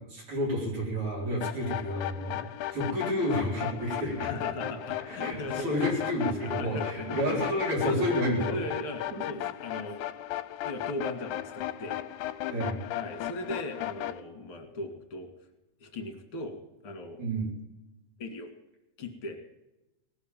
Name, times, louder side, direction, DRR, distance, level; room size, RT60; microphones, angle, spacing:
voice 1, 0.1-2.4 2.7-4.3 5.2-8.6 9.1-9.2 12.5-12.8 17.2-17.5, equal, 65° right, -4 dB, 5.7 m, -30 dB
sound 1, 1.4-14.2, left 13 dB, 75° left, 2.1 m, -36 dB
voice 2, 4.2-5.9 6.4-7.5 7.8-10.0 10.6-12.0 12.9-15.3 15.8-16.6 16.8-17.2 18.2-18.5 19.0-19.4, left 1 dB, 45° left, 5 dB, 2.8 m, -38 dB
18.5 x 7.0 x 9.0 m, 0.96 s
omnidirectional pair, 3.6 m